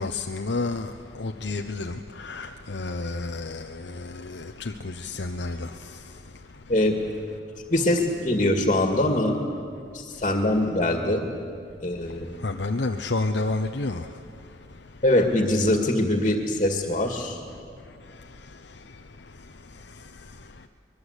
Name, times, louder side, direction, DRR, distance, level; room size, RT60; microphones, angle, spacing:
voice 1, 0.0-6.3 12.3-14.2 18.1-20.7, left 3 dB, 75° left, 4 dB, 0.8 m, -32 dB
voice 2, 6.7-7.1 7.7-9.4 9.9-11.2 11.8-12.3 15.0-17.4, left 1 dB, 35° left, 3 dB, 2.1 m, -23 dB
24.0 x 22.0 x 8.2 m, 2.4 s
head